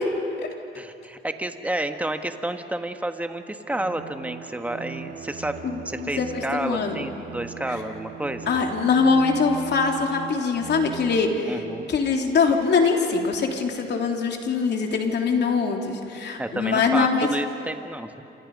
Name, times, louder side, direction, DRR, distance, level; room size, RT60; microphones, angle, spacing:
voice 1, 0.7-5.5 5.8-8.5 11.5-11.9 16.4-18.2, right 1 dB, 5° right, 6 dB, 1.5 m, -30 dB
Bowed string instrument, 3.6-12.2, right 7 dB, 60° right, 2.4 m, -39 dB
voice 2, 5.6-7.0 7.7-7.8 8.5-11.6 11.9-17.3, left 5 dB, 60° left, 2 dB, 3.2 m, -23 dB
28.5 x 27.5 x 5.4 m, 2.7 s
cardioid pair, 90°, 20 cm